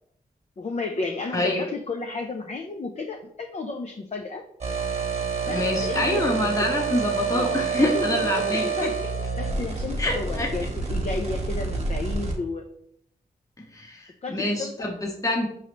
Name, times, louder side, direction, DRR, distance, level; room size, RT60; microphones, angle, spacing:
voice 1, 0.6-4.4 5.4-6.3 6.6-6.7 7.3-9.0 9.4-12.7 14.2-14.9, left 3 dB, 45° left, 3 dB, 0.5 m, -32 dB
voice 2, 1.3-1.7 5.4-8.7 10.0-10.5 13.7-15.5, left 1 dB, 20° left, 0 dB, 0.8 m, -26 dB
sound 1, 4.6-12.4, right 4 dB, 40° right, 1.1 m, -28 dB
4.7 x 3.1 x 3.0 m, 0.72 s
supercardioid pair, 40°, 16 cm